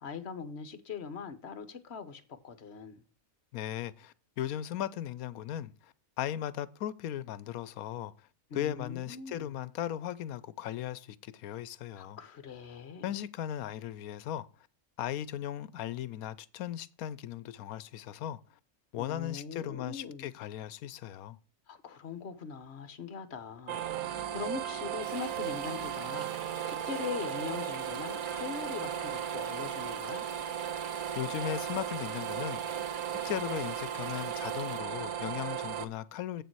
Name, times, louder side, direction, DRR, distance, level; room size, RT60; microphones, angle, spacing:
voice 1, 0.0-3.0 8.5-9.5 12.0-13.1 19.0-20.3 21.7-30.3, left 6 dB, 50° left, 1.1 m, -42 dB
voice 2, 3.5-8.1 8.5-12.2 13.0-14.5 15.0-18.4 18.9-21.4 31.2-32.6 33.2-36.4, left 11 dB, 80° left, 1.1 m, -37 dB
sound 1, 23.7-35.8, right 9 dB, 85° right, 1.2 m, -36 dB
sound 2, 25.0-34.8, right 4 dB, 40° right, 1.0 m, -47 dB
8.2 x 6.8 x 4.6 m
omnidirectional pair, 1.5 m